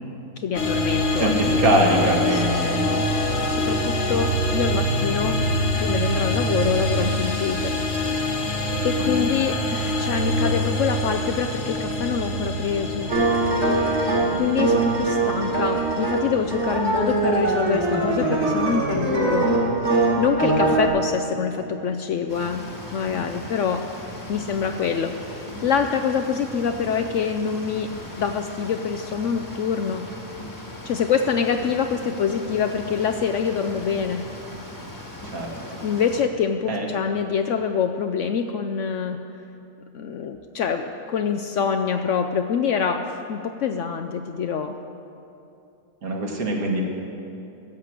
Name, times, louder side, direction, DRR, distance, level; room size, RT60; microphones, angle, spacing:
voice 1, 0.4-1.8 2.3-5.4 5.8-7.7 8.8-13.1 14.4-19.5 19.8-19.9 20.2-22.6 22.9-23.8 24.3-27.9 28.2-30.1 30.8-34.2 35.8-39.2 39.9-44.8, left 6 dB, 65° left, 5 dB, 0.8 m, -25 dB
sound 1, 0.5-19.7, left 1 dB, 50° left, 1.3 m, -26 dB
voice 2, 1.1-2.9 9.1-9.3 35.3-35.6 36.7-36.9 46.0-46.8, right 1 dB, 65° right, 0 dB, 2.1 m, -23 dB
sound 2, 13.1-20.9, right 2 dB, 45° right, 2.4 m, -22 dB
sound 3, 22.3-36.2, left 1 dB, 15° left, 1.4 m, -39 dB
13.5 x 7.6 x 8.1 m, 2.7 s
omnidirectional pair, 1.6 m